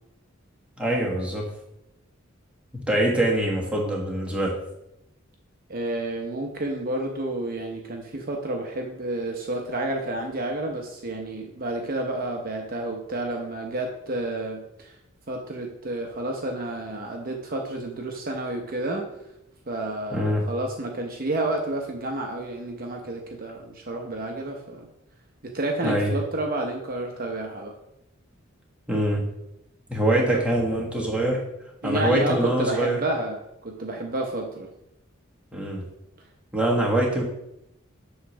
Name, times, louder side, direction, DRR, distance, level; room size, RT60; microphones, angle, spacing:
voice 1, 0.8-1.5 2.9-4.6 20.1-20.4 25.8-26.1 28.9-29.2 29.9-31.4 31.8-33.0 35.5-35.8 36.5-37.2, right 1 dB, 5° right, -3 dB, 1.4 m, -24 dB
voice 2, 5.7-14.9 15.3-19.1 19.7-24.9 25.4-27.7 30.1-30.4 31.8-34.7, right 2 dB, 45° right, 2 dB, 0.8 m, -30 dB
8.0 x 3.2 x 6.1 m, 0.85 s
head